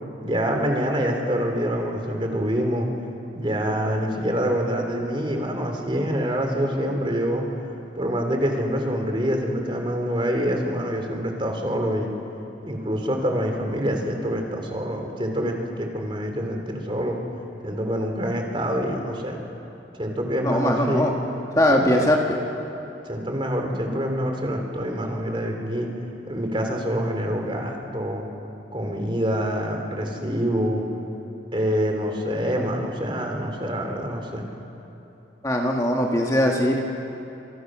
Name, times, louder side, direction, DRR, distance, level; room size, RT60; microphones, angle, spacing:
voice 1, 0.2-2.9 3.3-7.4 7.9-12.1 12.6-17.2 17.6-19.4 20.0-21.1 21.7-22.1 23.0-25.9 26.3-28.3 28.7-30.9 31.5-34.5, equal, 25° right, 3 dB, 3.3 m, -26 dB
voice 2, 20.4-21.1 21.5-22.4 35.4-36.8, left 1 dB, 20° left, 0 dB, 1.9 m, -20 dB
29.0 x 27.0 x 6.3 m, 3.0 s
head